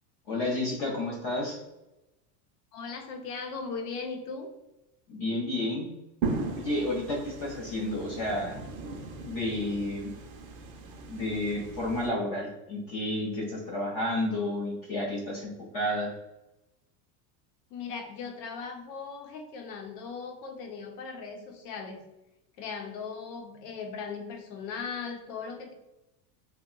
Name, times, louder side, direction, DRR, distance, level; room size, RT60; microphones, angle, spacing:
voice 1, 0.3-1.6 5.1-5.9 6.5-8.6 9.2-10.1 11.1-16.1, left 1 dB, 25° left, -2 dB, 0.4 m, -31 dB
voice 2, 2.7-4.5 17.7-22.0 22.6-25.7, left 5 dB, 75° left, 5 dB, 0.8 m, -38 dB
sound 1, 6.2-12.1, right 4 dB, 35° right, 0.4 m, -37 dB
2.8 x 2.2 x 3.7 m, 0.97 s
supercardioid pair, 175°, 49 cm